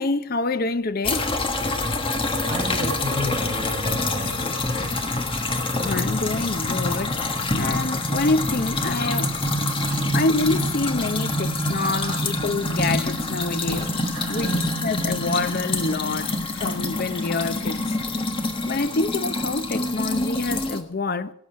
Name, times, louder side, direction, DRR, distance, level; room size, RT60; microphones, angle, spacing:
voice 1, 0.0-1.3 5.8-7.2 7.5-9.4 10.1-13.9 14.3-17.8 18.7-21.3, left 3 dB, 45° left, 0.6 m, -26 dB
sound 1, 1.0-20.8, left 2 dB, 25° left, 1.3 m, -26 dB
voice 2, 2.1-4.6 9.8-10.0 11.8-12.2 13.8-13.9 14.1-14.6, equal, 25° right, 5.3 m, -33 dB
18.0 x 8.3 x 6.2 m
head